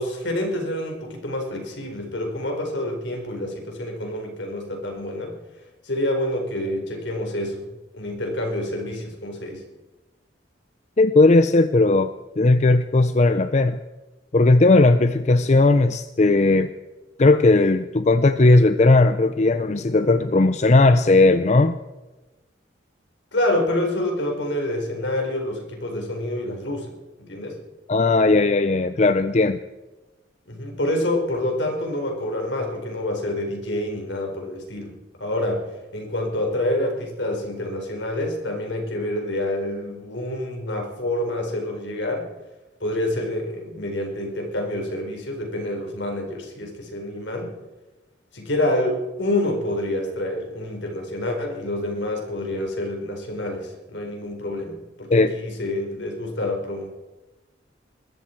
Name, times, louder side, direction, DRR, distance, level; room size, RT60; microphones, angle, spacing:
voice 1, 0.0-5.3 5.8-7.6 7.9-9.6 23.3-26.9 27.2-27.6 30.5-34.9 35.2-35.6 35.9-42.3 42.8-47.5 48.3-56.9, left 1 dB, 70° left, 2 dB, 4.4 m, -27 dB
voice 2, 11.0-13.8 14.3-16.7 17.2-21.8 27.9-29.6 55.1-55.3, left 2 dB, 35° left, 11 dB, 0.5 m, -17 dB
21.0 x 13.5 x 4.5 m, 1.1 s
head